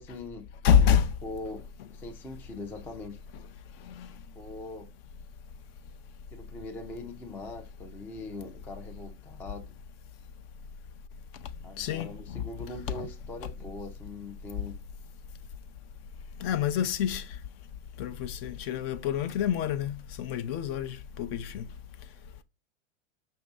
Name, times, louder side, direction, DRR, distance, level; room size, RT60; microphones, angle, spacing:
voice 1, 0.0-0.5 0.8-0.9 1.2-3.2 4.3-4.9 6.3-9.7 11.6-14.8, left 2 dB, 5° left, 0.3 m, -42 dB
voice 2, 0.6-1.1 3.9-4.1 11.8-12.4 12.9-13.1 16.4-17.2 18.0-21.6, left 8 dB, 50° left, 0.6 m, -27 dB
5.4 x 2.7 x 3.4 m
hypercardioid pair, 120°, 39 cm